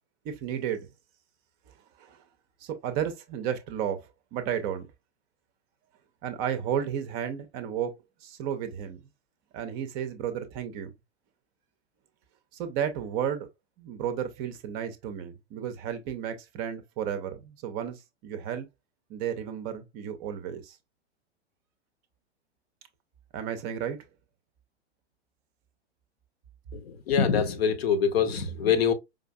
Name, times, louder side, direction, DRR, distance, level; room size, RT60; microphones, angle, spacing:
voice 1, 0.2-0.9 1.7-2.3 2.6-4.9 6.2-7.9 8.2-9.0 9.5-10.9 12.5-13.5 13.8-18.7 19.1-20.8 23.3-24.0, right 9 dB, 30° right, 0.5 m, -33 dB
voice 2, 26.7-28.9, left 6 dB, 60° left, 0.8 m, -24 dB
4.9 x 2.5 x 2.3 m
figure-of-eight pair, 105°, 34 cm